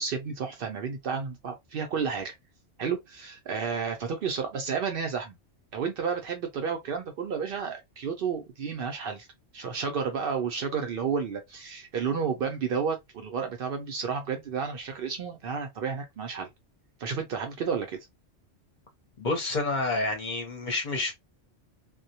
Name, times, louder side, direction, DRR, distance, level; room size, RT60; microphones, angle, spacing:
voice 1, 0.0-2.3 2.8-5.4 5.7-9.3 9.5-16.5 17.0-18.0, right 6 dB, 60° right, 0.6 m, -31 dB
voice 2, 19.2-21.1, left 2 dB, 45° left, 0.7 m, -29 dB
2.2 x 2.1 x 2.7 m
omnidirectional pair, 1.3 m